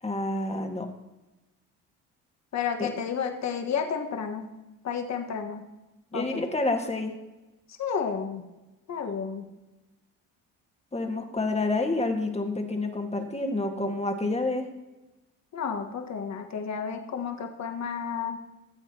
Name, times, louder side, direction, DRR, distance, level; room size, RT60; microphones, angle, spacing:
voice 1, 0.0-0.9 2.8-2.9 6.1-7.1 10.9-14.7, left 2 dB, 15° left, 4 dB, 1.8 m, -28 dB
voice 2, 2.5-4.5 4.8-5.6 6.1-6.4 7.8-8.4 8.9-9.4 15.5-18.4, left 6 dB, 45° left, 3 dB, 1.7 m, -31 dB
17.0 x 7.8 x 3.0 m, 1.1 s
supercardioid pair, 70°, 38 cm